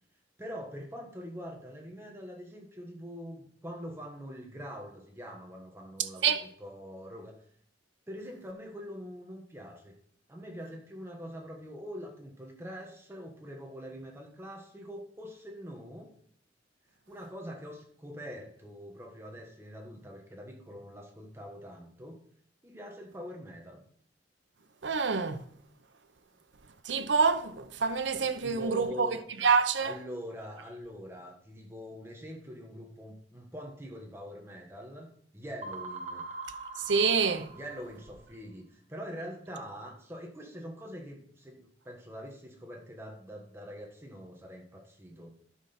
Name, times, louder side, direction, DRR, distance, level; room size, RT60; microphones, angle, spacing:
voice 1, 0.4-7.4 8.1-9.9 10.3-16.1 17.1-22.2 22.6-23.8 28.4-29.2 29.8-35.1 35.3-36.3 37.5-45.3, equal, 15° right, 1.3 m, -44 dB
voice 2, 24.8-25.4 26.8-29.9 36.9-37.5, right 5 dB, 90° right, 0.8 m, -27 dB
sound 1, 35.6-38.2, right 2 dB, 40° right, 1.0 m, -42 dB
11.5 x 6.1 x 4.3 m
head